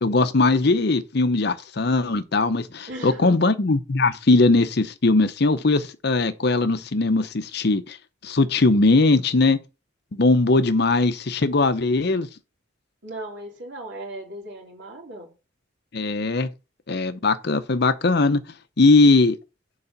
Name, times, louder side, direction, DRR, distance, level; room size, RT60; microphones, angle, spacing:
voice 1, 0.0-8.0 8.2-9.6 10.1-12.3 15.9-16.5 16.9-18.4 18.8-19.4, left 3 dB, 55° left, 0.7 m, -20 dB
voice 2, 2.9-3.4 13.0-15.3, right 1 dB, 60° right, 3.2 m, -37 dB
7.0 x 4.8 x 5.3 m
head